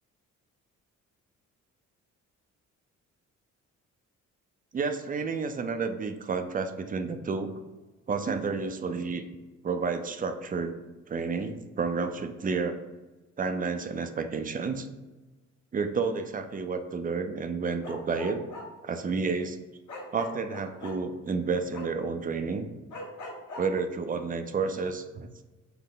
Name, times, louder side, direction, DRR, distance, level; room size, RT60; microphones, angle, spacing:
voice 1, 4.7-7.5 8.1-9.2 9.6-10.7 11.1-12.8 13.4-14.9 15.7-18.4 18.8-19.6 20.1-22.7 23.6-25.3, right 4 dB, 30° right, 8 dB, 0.4 m, -30 dB
Bark, 17.8-18.7 19.9-20.9 21.7-21.9 22.9-23.6, left 2 dB, 70° left, 1.3 m, -40 dB
5.6 x 2.1 x 3.8 m, 1.2 s
cardioid pair, 90°, 30 cm